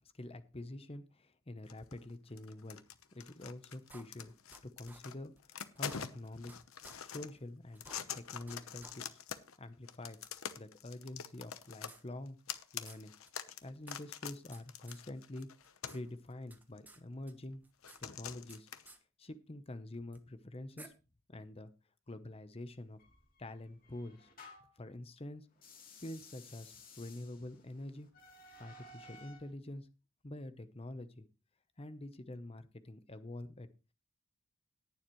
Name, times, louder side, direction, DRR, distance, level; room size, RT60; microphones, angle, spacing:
voice 1, 0.0-2.8 3.1-4.3 4.6-6.5 7.0-7.8 8.1-9.2 9.6-10.2 10.6-12.4 12.7-13.1 13.6-15.5 15.9-17.6 18.0-18.7 19.2-20.9 21.3-21.7 22.1-23.0 23.4-24.3 24.8-25.5 26.0-28.1 28.6-29.9 30.2-31.3 31.8-33.7, left 1 dB, 30° left, 12 dB, 0.8 m, -46 dB
sound 1, 1.7-2.1 2.4-5.1 5.4-7.3 7.7-9.6 9.9-16.1 16.8-16.9 17.8-18.9, left 8 dB, 85° left, 1.0 m, -45 dB
sound 2, 3.9-4.6 4.9-5.0 5.4-5.5 5.8-6.6 6.8-7.0 7.4-7.5 7.7-8.6 8.8-8.9 9.3-9.4 10.2-10.3 11.4-12.6 12.9-13.0 13.3-13.4 13.6-14.6 14.9-15.0 15.4-17.0 17.3-18.6 18.9-19.0 20.1-20.2 20.8-20.9, right 2 dB, 10° right, 1.2 m, -56 dB
sound 3, 23.0-24.8 25.5-29.5, left 2 dB, 45° left, 2.9 m, -57 dB
19.0 x 7.2 x 3.1 m, 0.30 s
head